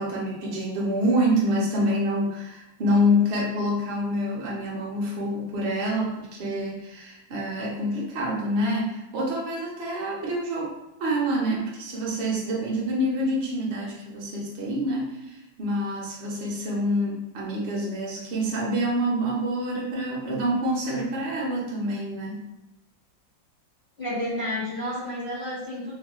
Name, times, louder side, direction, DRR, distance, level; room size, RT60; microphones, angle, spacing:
voice 1, 0.0-22.4, equal, 60° right, -4 dB, 0.6 m, -27 dB
voice 2, 24.0-26.0, left 1 dB, 70° left, -10 dB, 0.5 m, -30 dB
3.0 x 2.6 x 2.3 m, 0.97 s
omnidirectional pair, 2.1 m